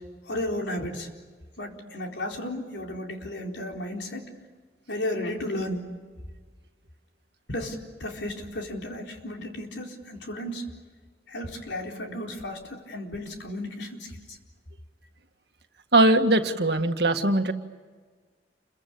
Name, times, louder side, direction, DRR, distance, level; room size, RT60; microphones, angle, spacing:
voice 1, 0.3-1.1 1.6-4.3 4.9-5.9 7.5-10.6 11.3-14.4, left 1 dB, 90° left, 1 dB, 4.3 m, -34 dB
voice 2, 15.9-17.5, right 1 dB, 65° right, 6 dB, 1.9 m, -20 dB
29.5 x 23.0 x 8.6 m, 1.4 s
head